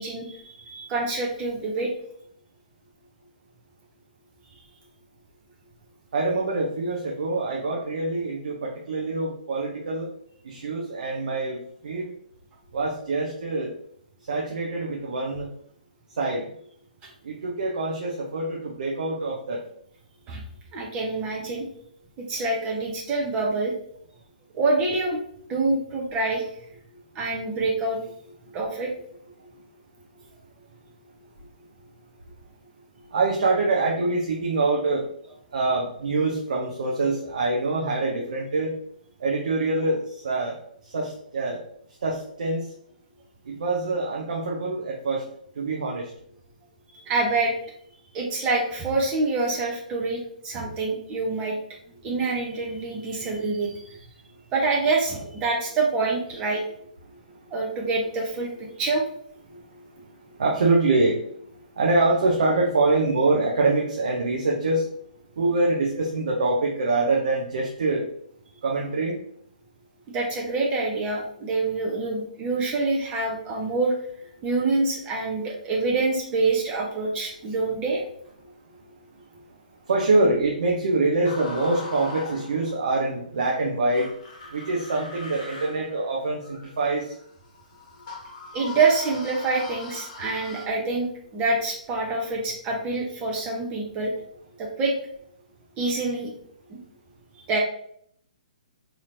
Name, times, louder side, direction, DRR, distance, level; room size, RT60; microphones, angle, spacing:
voice 1, 0.0-1.9 17.0-17.1 20.3-20.4 20.7-21.7 22.2-23.7 24.5-25.2 25.5-26.4 27.1-28.0 28.5-28.9 47.1-47.5 48.1-51.6 52.0-53.9 54.5-56.6 57.5-59.0 70.1-73.9 74.4-78.0 88.5-91.1 91.3-94.1 94.6-94.9 95.8-96.3 96.7-96.8 97.5-97.6, right 3 dB, 20° right, -1 dB, 0.7 m, -26 dB
voice 2, 6.1-10.1 10.4-12.1 12.7-13.7 14.3-15.5 16.2-16.5 17.2-19.6 26.9-27.2 28.4-28.5 29.5-29.6 33.0-35.1 35.5-38.8 39.2-40.6 40.8-41.6 42.0-42.7 43.4-45.3 45.6-46.1 53.2-53.3 57.1-57.7 59.5-64.9 65.4-68.0 68.6-69.2 78.4-79.4 79.9-84.1 84.5-87.2, right 2 dB, 60° right, -1 dB, 0.7 m, -25 dB
sound 1, 81.2-82.9 83.9-90.7, left 3 dB, 35° left, 0.8 m, -40 dB
4.3 x 2.9 x 2.5 m, 0.66 s
figure-of-eight pair, 125°, 5 cm